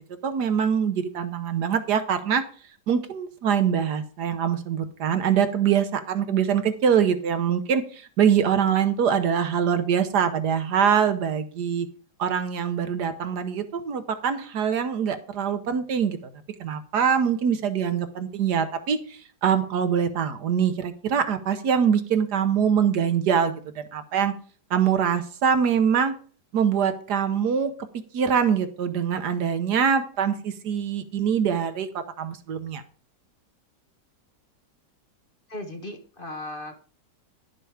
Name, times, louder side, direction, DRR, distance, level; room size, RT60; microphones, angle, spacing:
voice 1, 0.2-2.4 2.9-11.9 12.2-16.2 16.6-24.3 24.7-26.1 26.5-27.7 28.1-31.9 32.2-32.8, right 7 dB, 70° right, 10 dB, 1.5 m, -24 dB
voice 2, 35.5-36.8, left 1 dB, 30° left, 4 dB, 1.4 m, -37 dB
11.5 x 6.9 x 4.9 m, 0.40 s
omnidirectional pair, 1.9 m